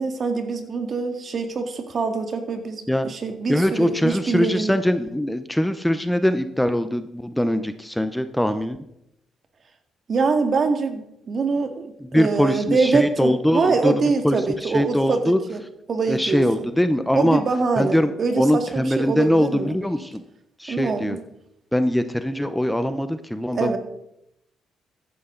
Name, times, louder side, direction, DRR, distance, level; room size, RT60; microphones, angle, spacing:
voice 1, 0.0-4.7 10.1-15.6 15.9-16.7 17.2-19.7 20.7-21.2 23.5-23.8, right 4 dB, 50° right, 6 dB, 2.1 m, -24 dB
voice 2, 3.5-8.8 12.1-15.4 16.1-17.4 17.8-20.2 20.6-21.2 21.7-23.8, equal, 5° left, 10 dB, 0.8 m, -22 dB
14.5 x 11.0 x 3.9 m, 0.80 s
cardioid pair, 90°, 0 cm